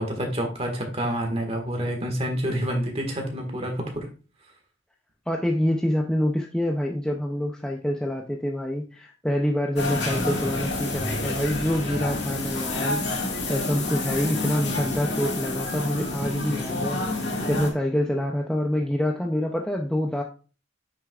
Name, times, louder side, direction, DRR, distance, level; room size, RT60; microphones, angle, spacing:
voice 1, 0.0-4.1, equal, 30° right, 3 dB, 1.7 m, -28 dB
voice 2, 5.3-13.0 13.5-20.2, left 1 dB, 5° left, 0 dB, 0.5 m, -26 dB
sound 1, 9.8-17.7, left 2 dB, 60° left, 2.0 m, -28 dB
8.3 x 6.4 x 2.4 m, 0.35 s
head